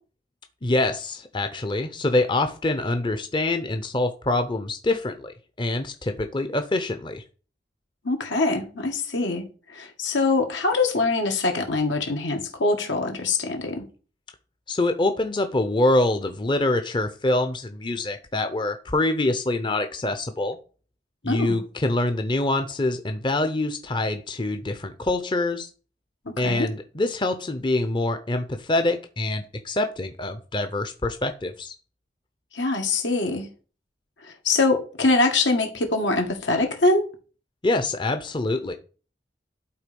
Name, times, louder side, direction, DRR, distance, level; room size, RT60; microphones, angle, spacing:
voice 1, 0.6-7.2 14.7-20.6 21.2-25.7 26.4-31.7 37.6-38.7, left 2 dB, 25° left, 0.7 m, -25 dB
voice 2, 8.0-9.5 9.7-13.8 21.2-21.6 26.3-26.7 32.5-33.5 34.2-37.0, left 3 dB, 80° left, 2.1 m, -23 dB
11.5 x 4.1 x 5.3 m
head